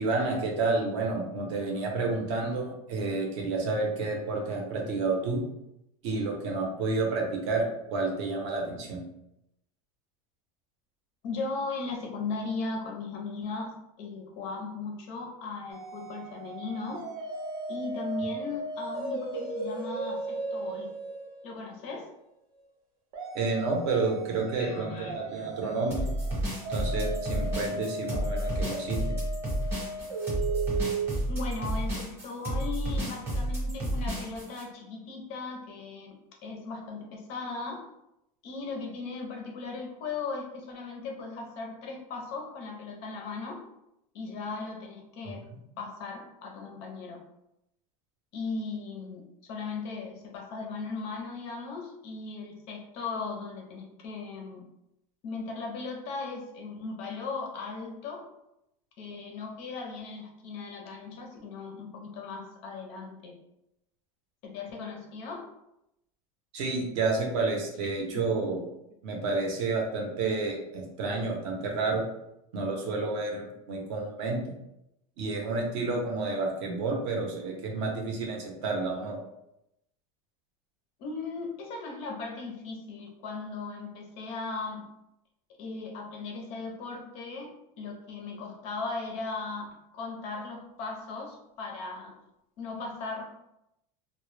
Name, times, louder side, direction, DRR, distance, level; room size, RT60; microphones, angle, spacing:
voice 1, 0.0-5.4 6.0-9.0 23.3-26.1 26.7-29.2 66.5-68.6 69.0-72.0 72.5-74.4 75.2-79.2, right 3 dB, 50° right, 1 dB, 0.6 m, -30 dB
voice 2, 11.2-17.0 17.7-20.9 21.4-22.1 24.6-25.8 31.3-36.1 36.4-37.8 38.4-43.6 44.1-45.4 45.8-47.2 48.3-54.6 55.2-58.3 59.0-63.3 64.4-65.4 68.1-68.5 81.0-84.8 85.6-87.5 87.8-92.1 92.6-93.2, left 4 dB, 35° left, 1 dB, 0.4 m, -37 dB
sound 1, 15.7-21.9 23.1-31.1, right 3 dB, 80° right, 0.7 m, -36 dB
sound 2, 25.9-34.6, right 1 dB, 15° right, 0.8 m, -31 dB
2.0 x 2.0 x 3.0 m, 0.84 s
supercardioid pair, 165°, 18 cm